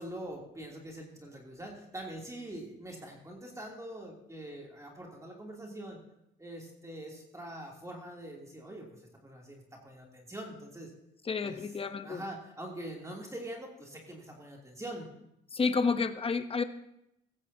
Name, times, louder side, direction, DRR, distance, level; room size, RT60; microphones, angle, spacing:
voice 1, 0.0-6.0 6.4-10.9 11.4-11.6 12.0-15.1, right 1 dB, 15° right, -2 dB, 3.0 m, -44 dB
voice 2, 11.2-12.2 15.5-16.6, left 4 dB, 30° left, 9 dB, 1.0 m, -30 dB
16.5 x 14.5 x 2.8 m, 0.81 s
cardioid pair, 90°, 20 cm